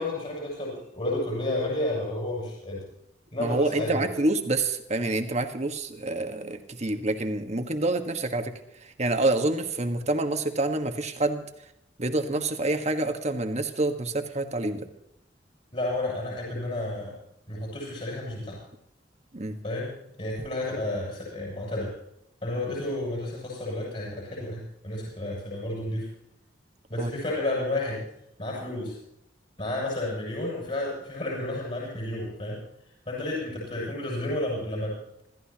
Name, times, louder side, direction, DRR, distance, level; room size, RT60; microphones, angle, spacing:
voice 1, 0.0-2.8 3.3-4.1 15.7-17.2 17.5-18.6 19.6-19.9 20.2-21.9 22.4-26.1 26.9-28.0 28.4-29.0 29.6-32.6 33.1-35.2, left 1 dB, 40° left, -3 dB, 7.5 m, -31 dB
voice 2, 3.4-8.5 9.0-11.5 12.0-14.8 19.3-19.6 27.0-27.1, right 2 dB, 40° right, 6 dB, 1.6 m, -27 dB
26.5 x 14.0 x 3.0 m, 0.79 s
head